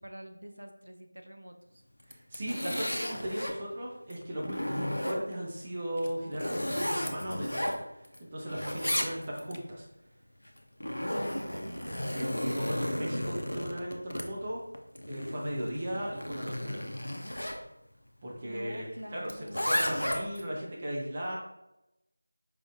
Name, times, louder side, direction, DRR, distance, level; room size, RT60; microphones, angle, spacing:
voice 1, 0.0-1.8 11.2-11.9 15.6-15.9 18.4-19.7, equal, 75° right, 5 dB, 0.7 m, -46 dB
Zipper (clothing), 2.0-3.6 4.1-5.5 6.0-8.2 8.5-9.6 10.5-17.6 19.3-20.5, left 1 dB, 75° left, 0.6 m, -34 dB
voice 2, 2.1-7.8 8.3-9.9 12.1-14.6 15.1-16.8 18.2-21.4, equal, 20° right, -4 dB, 0.6 m, -37 dB
5.0 x 3.8 x 2.5 m, 0.91 s
figure-of-eight pair, 170°, 0 cm